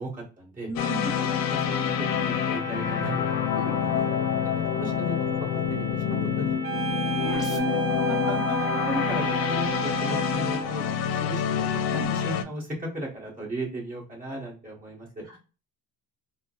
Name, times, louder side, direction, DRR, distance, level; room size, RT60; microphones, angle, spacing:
voice 1, 0.0-0.7 1.2-3.2 3.8-4.0 4.8-5.1 5.7-6.0 6.4-6.6 6.9-7.0 7.5-7.8 8.1-15.2, right 1 dB, 20° right, -4 dB, 1.5 m, -36 dB
voice 2, 0.6-1.1 3.6-4.0 7.2-7.5 11.9-12.1 15.2-15.4, equal, 40° right, -3 dB, 1.3 m, -35 dB
sound 1, 0.8-12.4, left 8 dB, 65° left, 0.5 m, -27 dB
sound 2, 0.8-7.6, right 2 dB, 10° left, 0.4 m, -39 dB
sound 3, 6.6-10.8, right 10 dB, 90° right, 0.9 m, -32 dB
3.7 x 2.2 x 2.5 m, 0.33 s
cardioid pair, 140°, 38 cm